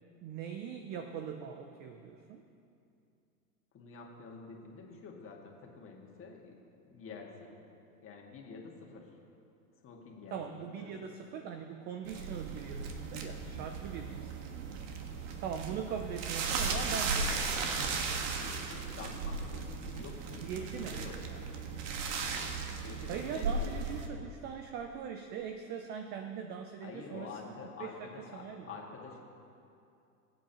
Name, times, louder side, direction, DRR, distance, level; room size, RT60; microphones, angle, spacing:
voice 1, 0.2-2.4 10.3-14.4 15.4-17.6 20.4-21.0 21.3-21.4 23.1-27.3 27.8-28.7, right 7 dB, 25° right, 6 dB, 0.4 m, -41 dB
voice 2, 3.7-6.5 6.9-7.6 8.0-9.1 9.8-10.9 18.4-21.2 22.8-23.8 26.8-29.2, left 4 dB, 25° left, 0 dB, 1.9 m, -48 dB
sound 1, 12.1-24.1, right 4 dB, 50° right, 1.5 m, -36 dB
20.5 x 8.3 x 2.9 m, 2.6 s
hypercardioid pair, 110°, 48 cm